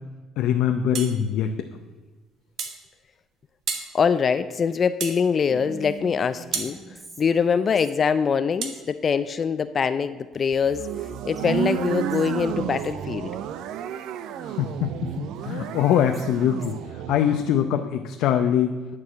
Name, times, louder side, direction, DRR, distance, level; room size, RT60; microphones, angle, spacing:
voice 1, 0.4-1.5 14.4-16.8 17.1-18.8, left 9 dB, 70° left, 5 dB, 0.6 m, -23 dB
sound 1, 0.9-1.2 2.6-2.8 3.7-3.9 5.0-5.2 6.5-6.7 8.6-8.8, right 6 dB, 55° right, 1.3 m, -30 dB
voice 2, 3.9-6.8 7.2-10.9 11.3-13.3, left 6 dB, 35° left, 13 dB, 0.4 m, -23 dB
Whispering, 5.5-8.3 10.3-11.1 11.4-11.5 11.8-13.0 14.8-17.0, right 3 dB, 15° right, 1.3 m, -45 dB
sound 2, 10.6-17.5, right 10 dB, 70° right, 0.6 m, -31 dB
10.5 x 4.8 x 7.4 m, 1.3 s
cardioid pair, 125°, 0 cm